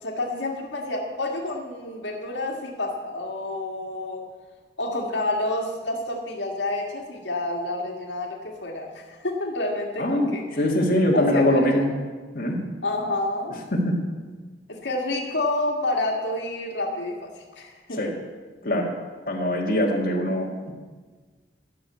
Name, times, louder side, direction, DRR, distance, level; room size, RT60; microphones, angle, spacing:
voice 1, 0.0-4.2 4.8-10.6 11.1-11.6 12.8-13.5 14.8-17.3 17.6-18.0, left 2 dB, 85° left, 0 dB, 1.7 m, -29 dB
voice 2, 10.0-11.9 12.3-12.6 13.5-14.0 17.9-18.1 18.6-18.9 19.3-20.7, left 1 dB, 55° left, -2 dB, 1.9 m, -23 dB
12.5 x 6.5 x 8.4 m, 1.4 s
head